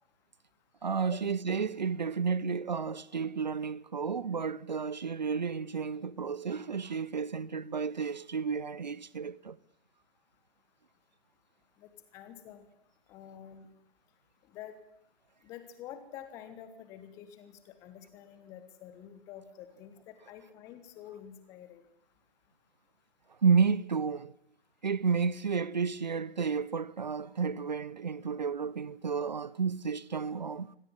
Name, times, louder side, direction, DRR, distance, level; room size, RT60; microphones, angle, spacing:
voice 1, 0.8-9.6 23.3-24.3 24.8-30.7, right 5 dB, 45° right, 0.9 m, -31 dB
voice 2, 11.8-12.6 13.1-13.7 14.5-14.7 15.4-21.8, left 10 dB, 10° left, 1.3 m, -48 dB
24.5 x 18.0 x 9.6 m
figure-of-eight pair, 145°, 30 cm